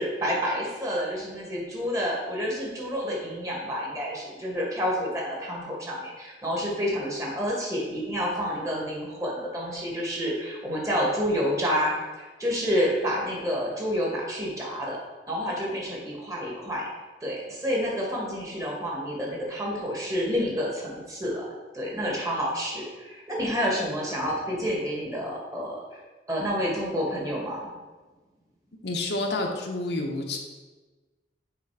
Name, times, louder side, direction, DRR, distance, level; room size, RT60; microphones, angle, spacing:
voice 1, 0.0-15.0 15.3-16.8 17.2-21.5 21.7-26.0 26.3-27.7, equal, 20° right, -3 dB, 1.6 m, -29 dB
voice 2, 28.8-30.4, left 2 dB, 75° left, 2 dB, 0.9 m, -29 dB
7.3 x 3.7 x 4.7 m, 1.3 s
head